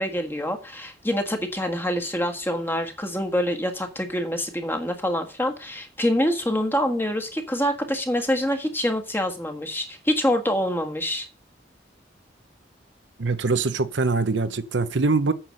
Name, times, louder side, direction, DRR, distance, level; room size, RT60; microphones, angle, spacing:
voice 1, 0.0-11.3, equal, 10° left, 1.6 m, -26 dB
voice 2, 13.2-15.3, right 3 dB, 85° right, 0.8 m, -23 dB
8.8 x 6.0 x 6.4 m
head